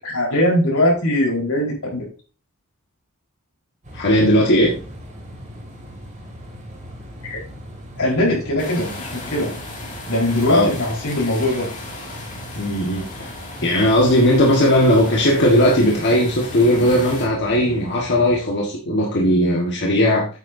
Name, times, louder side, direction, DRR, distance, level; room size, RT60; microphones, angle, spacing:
voice 1, 0.0-2.0 7.2-7.4 8.0-9.5 10.1-11.7, left 1 dB, 80° left, -2 dB, 4.4 m, -20 dB
sound 1, 3.8-18.5, equal, 35° right, 2.3 m, -39 dB
voice 2, 3.9-4.7 10.5-10.7 12.5-13.3 13.6-20.3, equal, 50° left, -2 dB, 1.5 m, -17 dB
sound 2, 8.6-17.3, left 2 dB, 35° left, 2.3 m, -36 dB
9.0 x 8.5 x 2.7 m, 0.37 s
head